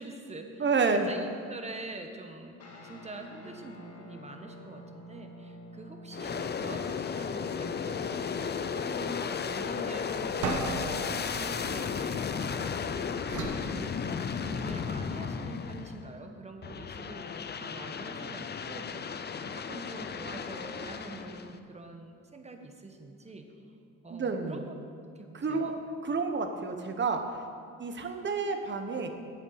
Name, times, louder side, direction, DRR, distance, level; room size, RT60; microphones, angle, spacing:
voice 1, 0.0-2.6 2.8-23.5 24.0-24.8 25.0-25.8, right 2 dB, 20° right, 4 dB, 1.4 m, -45 dB
voice 2, 0.6-1.1 24.1-24.6 25.3-25.8 26.0-27.2 27.8-29.1, right 4 dB, 40° right, 6 dB, 1.3 m, -29 dB
sound 1, 2.6-12.3, left 1 dB, 50° left, 2.2 m, -50 dB
Aircraft, 6.1-16.1 16.6-21.6, left 6 dB, 35° left, 0.6 m, -34 dB
sound 2, 10.4-12.6 13.3-14.7, right 3 dB, 75° right, 1.5 m, -37 dB
8.8 x 7.3 x 8.9 m, 2.3 s
cardioid pair, 90°, 30 cm